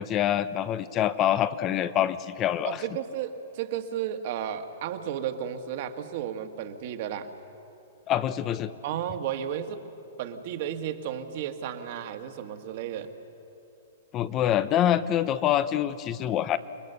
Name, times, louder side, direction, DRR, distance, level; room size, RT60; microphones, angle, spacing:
voice 1, 0.0-2.8 8.1-8.7 14.1-16.6, left 11 dB, 30° left, 14 dB, 0.7 m, -25 dB
voice 2, 2.7-7.3 8.8-9.8 10.2-13.1, right 9 dB, 55° right, 7 dB, 1.7 m, -33 dB
28.0 x 21.0 x 6.8 m, 2.8 s
hypercardioid pair, 130°, 0 cm